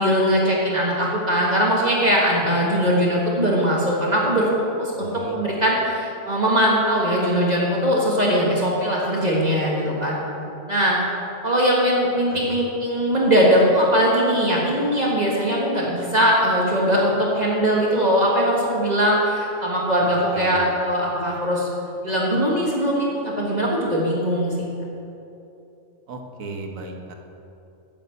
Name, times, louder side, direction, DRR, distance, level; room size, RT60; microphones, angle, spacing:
voice 1, 0.0-4.5 4.8-10.2 10.7-11.0 11.4-21.7 22.0-24.5, equal, 35° right, -3 dB, 1.5 m, -20 dB
voice 2, 4.9-5.3 12.3-12.6 20.0-20.8 26.1-27.1, right 3 dB, 85° right, 3 dB, 1.5 m, -36 dB
8.4 x 6.9 x 7.9 m, 2.7 s
omnidirectional pair, 1.4 m